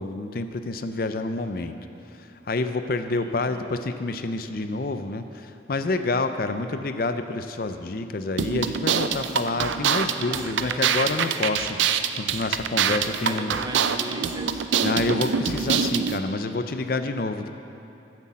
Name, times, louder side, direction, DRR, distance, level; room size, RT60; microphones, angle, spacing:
voice 1, 0.0-1.8 2.1-11.8 12.2-13.6 14.8-17.5, left 3 dB, 50° left, 9 dB, 0.5 m, -28 dB
voice 2, 3.2-3.6 10.3-11.4 12.9-14.7, right 2 dB, 20° right, 6 dB, 0.5 m, -39 dB
sound 1, 8.4-16.2, right 7 dB, 85° right, 0.4 m, -25 dB
9.7 x 7.9 x 7.4 m, 2.8 s
head